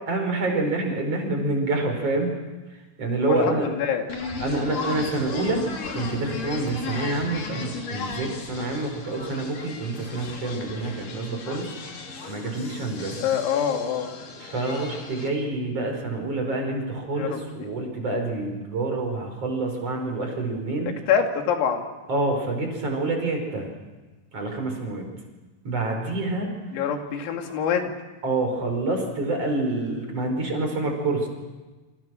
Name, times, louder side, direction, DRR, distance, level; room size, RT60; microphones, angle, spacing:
voice 1, 0.1-2.3 3.0-3.7 4.4-5.6 5.9-11.7 12.2-13.2 14.4-20.9 22.1-23.7 24.3-25.1 25.6-26.5 27.5-27.6 28.2-31.3, right 2 dB, 30° right, 3 dB, 5.6 m, -27 dB
voice 2, 3.2-4.1 13.2-14.1 17.2-17.4 20.9-21.8 26.7-27.9, left 8 dB, 85° left, 4 dB, 5.2 m, -25 dB
sound 1, 4.1-15.3, left 4 dB, 45° left, 4.1 m, -36 dB
28.0 x 26.5 x 6.4 m, 1.2 s
omnidirectional pair, 5.9 m